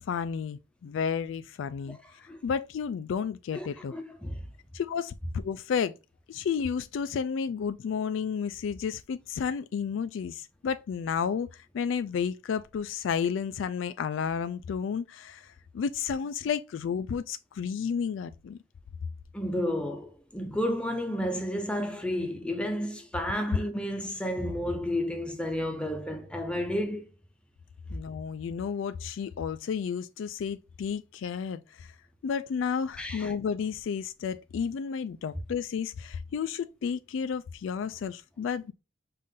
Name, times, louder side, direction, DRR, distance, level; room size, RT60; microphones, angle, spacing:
voice 1, 0.0-2.0 2.4-3.9 4.7-5.9 6.3-18.6 27.9-31.9 32.2-38.7, left 6 dB, 75° left, 0.3 m, -32 dB
voice 2, 1.9-2.4 3.5-4.4 19.3-27.1 33.0-33.3, left 1 dB, 5° left, 0.6 m, -32 dB
5.5 x 2.5 x 3.6 m
head